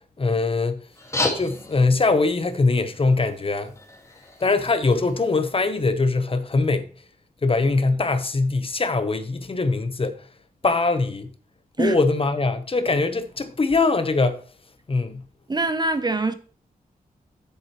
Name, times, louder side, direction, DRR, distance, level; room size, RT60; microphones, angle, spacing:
voice 1, 0.2-0.8 1.3-3.7 4.4-6.9 7.4-10.2 10.6-11.3 11.8-14.4 14.9-15.2, left 3 dB, 35° left, 0.9 m, -22 dB
sound 1, 0.9-5.9, left 2 dB, 20° left, 1.9 m, -34 dB
voice 2, 15.5-16.3, right 2 dB, 25° right, 0.8 m, -23 dB
9.5 x 7.9 x 3.1 m
wide cardioid pair, 135°, 16 cm